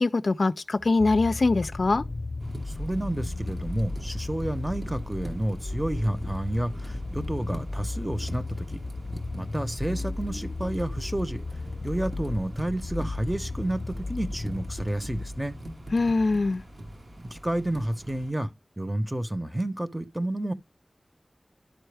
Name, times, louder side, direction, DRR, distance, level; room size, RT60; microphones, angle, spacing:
voice 1, 0.0-2.0 15.9-16.6, left 3 dB, 70° left, 0.4 m, -23 dB
sound 1, 0.8-16.4 17.2-17.3, left 2 dB, 50° left, 0.8 m, -35 dB
sound 2, 2.4-18.3, right 1 dB, 60° right, 1.3 m, -43 dB
voice 2, 2.7-8.7 9.3-11.4 11.8-15.6 17.3-18.5 18.8-20.5, right 1 dB, 10° right, 0.9 m, -30 dB
11.5 x 4.4 x 3.3 m
wide cardioid pair, 70°, 0 cm